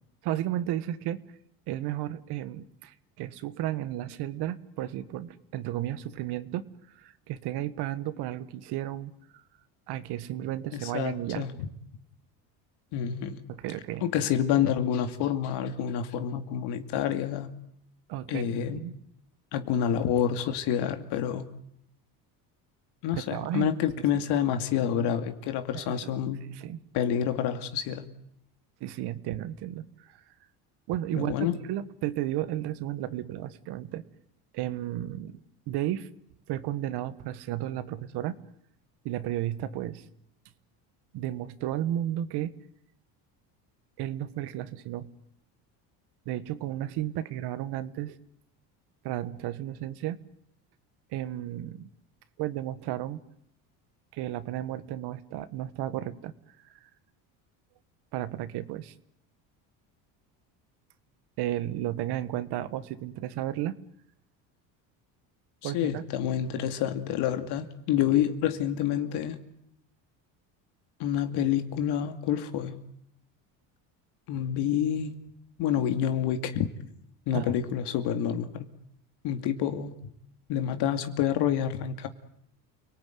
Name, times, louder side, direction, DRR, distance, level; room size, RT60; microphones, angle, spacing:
voice 1, 0.2-1.2 1.7-9.4 9.9-11.4 13.5-14.0 18.1-18.9 23.1-23.7 24.1-24.2 25.7-26.8 28.8-30.2 30.9-34.0 34.5-35.3 35.7-36.1 36.5-38.3 39.0-40.1 41.1-42.5 44.0-45.1 46.2-48.2 49.0-50.2 51.1-51.9 52.4-53.2 54.1-56.3 56.8-56.9 58.1-58.9 61.4-63.7 65.6-66.0 77.3-77.6, right 13 dB, 70° right, 14 dB, 1.7 m, -33 dB
voice 2, 10.7-11.6 12.9-13.4 14.0-17.5 18.3-18.8 19.5-21.5 23.0-26.4 26.9-28.0 31.1-31.6 65.6-69.4 71.0-72.8 74.3-75.1 75.6-76.7 77.3-78.7 79.2-80.0 80.5-82.1, left 9 dB, 75° left, 8 dB, 2.5 m, -28 dB
29.5 x 19.0 x 9.5 m, 0.73 s
supercardioid pair, 100°, 41 cm